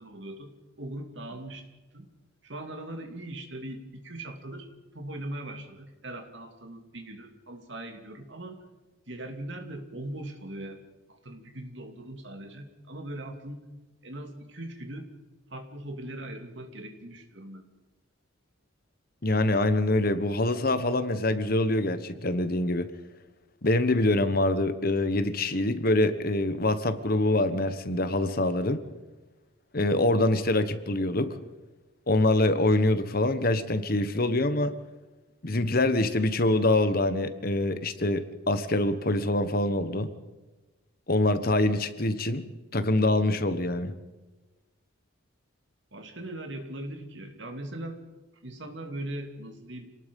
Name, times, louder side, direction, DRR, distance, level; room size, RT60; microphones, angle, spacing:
voice 1, 0.0-1.7 1.9-2.1 2.4-8.6 9.1-10.8 11.1-13.7 14.0-15.1 15.5-17.7 45.9-48.1 48.4-49.9, right 1 dB, 60° right, 5 dB, 2.7 m, -40 dB
voice 2, 19.2-22.9 23.6-28.8 29.7-31.4 32.1-34.7 35.4-40.1 41.1-42.4 42.7-43.9, left 2 dB, 45° left, 11 dB, 1.3 m, -25 dB
27.5 x 19.0 x 5.4 m, 1.2 s
head